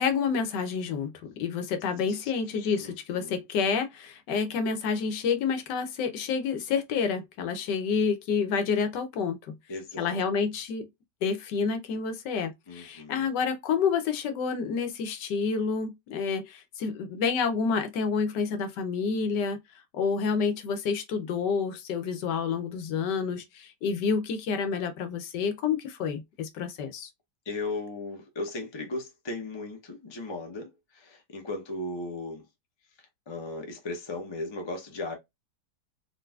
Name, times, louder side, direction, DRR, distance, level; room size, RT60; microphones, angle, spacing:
voice 1, 0.0-9.6 10.0-10.9 11.2-19.6 19.9-27.1, left 5 dB, 80° left, 1.3 m, -29 dB
voice 2, 2.8-3.4 9.7-10.2 12.7-13.3 27.4-32.5 33.0-35.1, left 2 dB, 35° left, 0.4 m, -37 dB
3.9 x 2.6 x 2.3 m
omnidirectional pair, 1.9 m